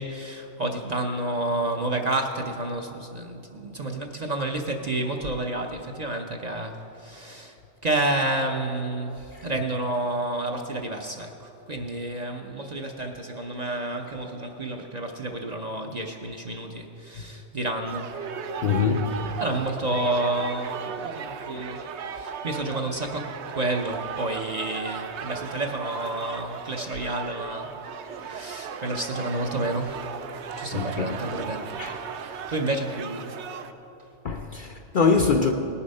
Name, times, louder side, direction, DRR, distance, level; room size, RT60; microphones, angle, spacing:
voice 1, 0.0-7.5 7.8-18.1 19.4-21.9 22.1-23.3 23.5-27.7 28.2-30.0 30.6-31.6 32.5-33.4, right 2 dB, 40° right, 0.7 m, -30 dB
sound 1, 17.9-33.7, right 6 dB, 70° right, 0.9 m, -36 dB
voice 2, 18.6-19.4 30.7-31.2 31.8-32.0 34.2-35.5, left 5 dB, 55° left, 0.6 m, -24 dB
18.5 x 7.0 x 5.3 m
omnidirectional pair, 1.3 m